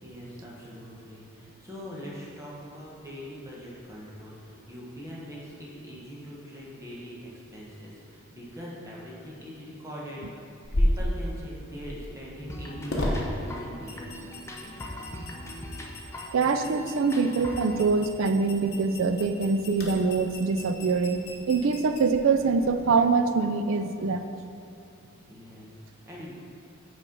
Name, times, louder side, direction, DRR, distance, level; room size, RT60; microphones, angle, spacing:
voice 1, 0.0-10.3 10.8-14.1 25.3-26.3, equal, 15° right, -6 dB, 1.1 m, -42 dB
sound 1, 10.6-22.9, left 1 dB, 50° left, 1.0 m, -34 dB
sound 2, 12.5-17.8, equal, 15° left, 0.6 m, -41 dB
voice 2, 16.3-24.2, right 4 dB, 70° right, 8 dB, 0.4 m, -24 dB
6.1 x 4.3 x 5.2 m, 2.7 s
head